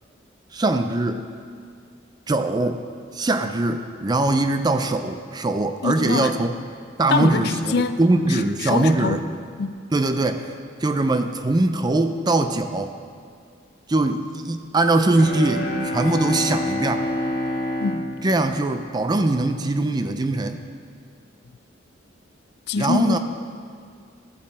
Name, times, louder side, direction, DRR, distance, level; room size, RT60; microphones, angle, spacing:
voice 1, 0.5-1.2 2.3-2.8 3.1-6.5 7.0-9.2 9.9-10.5 10.8-12.9 13.9-17.1 18.2-20.6 22.8-23.2, right 2 dB, 20° right, 8 dB, 0.4 m, -22 dB
voice 2, 5.8-6.3 7.1-9.2 9.6-9.8 17.8-18.1 22.7-23.2, left 4 dB, 55° left, 11 dB, 0.4 m, -25 dB
Bowed string instrument, 15.1-19.4, left 1 dB, 40° left, 1.3 m, -28 dB
13.5 x 7.3 x 4.2 m, 2.2 s
head